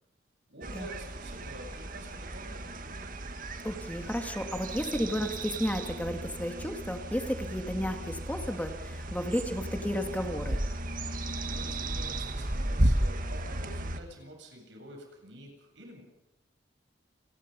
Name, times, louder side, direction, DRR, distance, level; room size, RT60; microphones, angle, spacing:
voice 1, 0.5-3.1 11.4-16.0, right 1 dB, 85° right, 2 dB, 8.0 m, -48 dB
sound 1, 0.6-14.0, right 1 dB, 50° right, 1.8 m, -34 dB
voice 2, 3.6-10.6, equal, 10° left, 5 dB, 2.1 m, -33 dB
29.0 x 20.5 x 5.5 m, 0.83 s
head